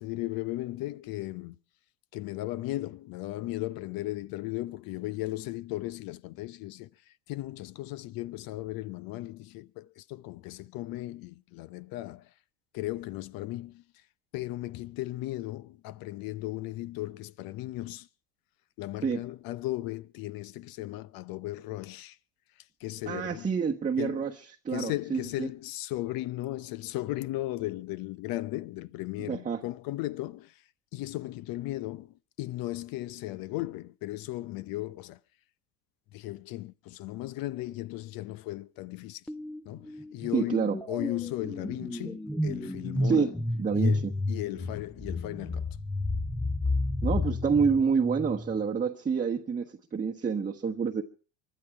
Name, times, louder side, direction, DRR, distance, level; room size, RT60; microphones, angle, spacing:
voice 1, 0.0-1.6 2.1-12.3 12.7-13.8 14.3-18.1 18.8-22.2 22.6-23.5 24.0-24.3 24.7-30.6 30.9-35.2 36.1-39.2 39.7-43.3 43.8-45.7, left 17 dB, 55° left, 0.7 m, -36 dB
voice 2, 23.1-24.3 24.6-25.5 29.3-29.6 40.3-40.8 43.0-43.3 43.6-44.1 47.0-49.6 49.9-51.0, right 6 dB, 20° right, 1.1 m, -27 dB
sound 1, 39.3-39.6 39.9-48.6, left 2 dB, ahead, 0.8 m, -31 dB
24.5 x 11.0 x 4.8 m
supercardioid pair, 100°, 43 cm